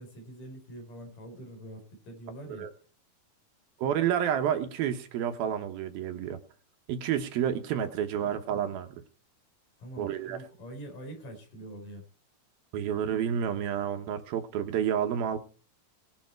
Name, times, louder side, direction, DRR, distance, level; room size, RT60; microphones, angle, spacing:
voice 1, 0.0-2.7 9.8-12.0, right 1 dB, 55° left, 3 dB, 5.8 m, -44 dB
voice 2, 3.8-6.4 6.9-8.9 10.0-10.4 12.7-15.4, right 9 dB, 75° right, 7 dB, 2.9 m, -29 dB
20.0 x 7.0 x 4.4 m, 0.39 s
omnidirectional pair, 4.4 m